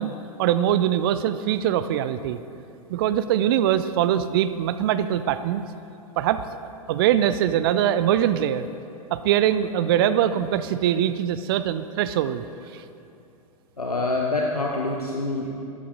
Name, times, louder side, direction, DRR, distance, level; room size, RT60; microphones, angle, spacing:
voice 1, 0.0-2.4 2.9-5.6 6.2-6.4 6.9-8.7 9.1-12.4 12.7-12.8, right 10 dB, 40° right, 12 dB, 0.4 m, -22 dB
voice 2, 13.8-15.5, left 2 dB, 85° left, 0 dB, 0.9 m, -26 dB
13.0 x 8.4 x 3.9 m, 2.6 s
figure-of-eight pair, 100°, 19 cm